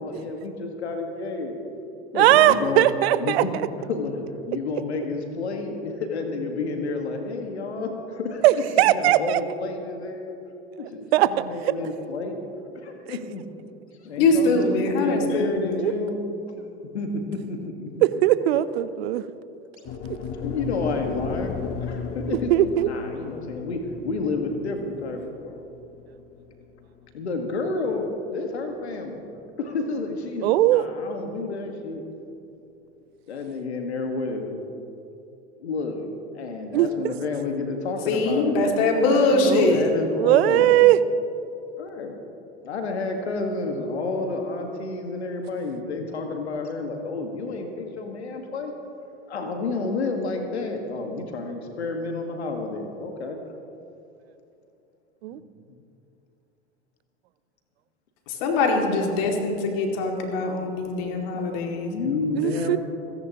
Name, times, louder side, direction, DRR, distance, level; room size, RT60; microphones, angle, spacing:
voice 1, 0.0-1.6 2.1-2.9 3.2-3.5 3.9-8.4 8.8-10.3 10.8-12.4 12.7-13.4 14.0-16.3 16.9-18.0 20.4-21.5 21.8-23.8 24.0-25.6 27.1-29.3 29.6-32.0 33.3-34.6 35.6-38.6 39.1-40.8 41.8-42.2 42.6-48.7 49.3-53.4 55.3-55.4 55.7-55.8 61.0-62.8, left 3 dB, 85° left, 4 dB, 1.7 m, -30 dB
voice 2, 2.1-3.4 8.4-9.4 11.1-11.7 15.8-15.9 18.0-19.3 22.3-22.9 30.4-30.9 36.7-37.1 39.4-39.8 40.2-41.0 55.2-55.4 62.4-62.8, right 14 dB, 70° right, 15 dB, 0.6 m, -19 dB
voice 3, 14.2-15.9 38.1-39.8 58.4-61.9, left 3 dB, 65° left, 2 dB, 2.4 m, -22 dB
sound 1, 19.8-28.1, left 5 dB, 45° left, 1.3 m, -35 dB
28.0 x 10.5 x 2.9 m, 2.7 s
hypercardioid pair, 75°, 32 cm